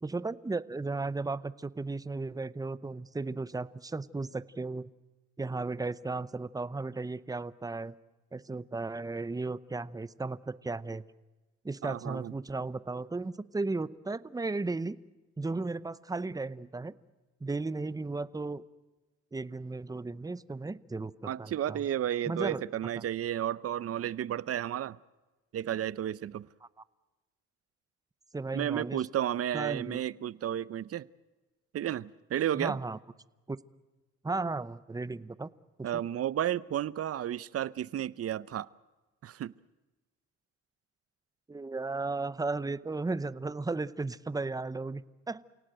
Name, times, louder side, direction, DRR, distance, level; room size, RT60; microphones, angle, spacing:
voice 1, 0.0-4.9 5.4-7.9 8.3-11.0 11.6-15.0 15.4-16.9 17.4-18.6 19.3-21.8 22.3-22.6 23.0-23.1 28.3-29.0 29.5-30.0 32.6-33.0 33.5-33.6 34.2-35.5 35.8-36.0 41.5-45.4, right 3 dB, 10° right, 0.7 m, -35 dB
voice 2, 11.8-12.3 21.2-25.0 25.5-26.5 28.5-31.1 31.7-32.8 35.8-38.7 39.2-39.5, right 11 dB, 50° right, 0.7 m, -32 dB
28.5 x 18.0 x 7.9 m
cardioid pair, 90°, 30 cm